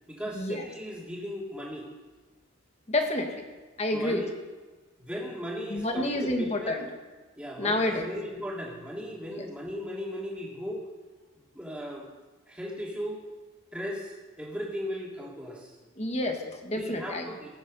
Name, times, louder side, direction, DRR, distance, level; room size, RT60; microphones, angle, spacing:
voice 1, 0.1-1.9 3.9-4.3 5.0-6.8 7.4-10.8 11.5-12.1 12.5-13.2 13.7-15.8 16.7-17.5, equal, 5° right, -4 dB, 2.8 m, -37 dB
voice 2, 2.9-3.3 3.8-4.2 5.7-6.9 7.6-8.1 9.3-9.5 16.0-17.3, left 1 dB, 30° left, 4 dB, 1.6 m, -29 dB
18.5 x 8.9 x 5.4 m, 1.3 s
head